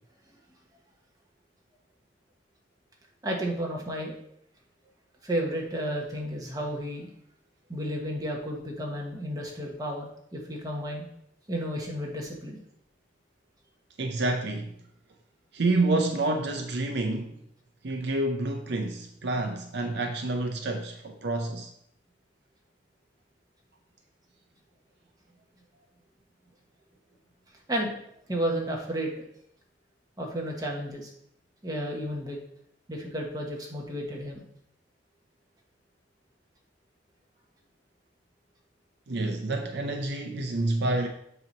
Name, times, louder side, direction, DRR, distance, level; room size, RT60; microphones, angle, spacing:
voice 1, 3.2-4.2 5.2-7.1 7.7-11.1 11.5-12.6 27.7-27.9 28.3-29.2 30.2-31.1 31.6-32.4 32.9-34.4, equal, 20° right, 1.2 m, -32 dB
voice 2, 14.0-14.7 15.5-17.3 17.8-21.7 39.1-41.1, right 2 dB, 60° right, 0.5 m, -28 dB
7.8 x 2.9 x 5.3 m
head